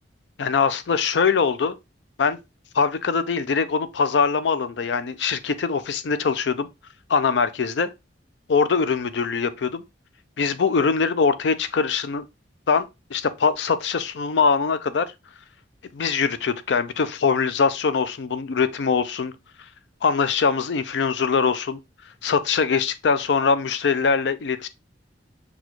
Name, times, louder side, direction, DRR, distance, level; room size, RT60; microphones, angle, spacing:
voice 1, 0.4-1.7 2.2-2.4 2.7-6.7 7.1-7.9 8.5-9.8 10.4-12.2 12.7-12.9 13.1-15.1 15.9-19.3 20.0-21.8 22.2-24.7, left 5 dB, 70° left, 0.5 m, -22 dB
6.0 x 2.3 x 3.0 m
head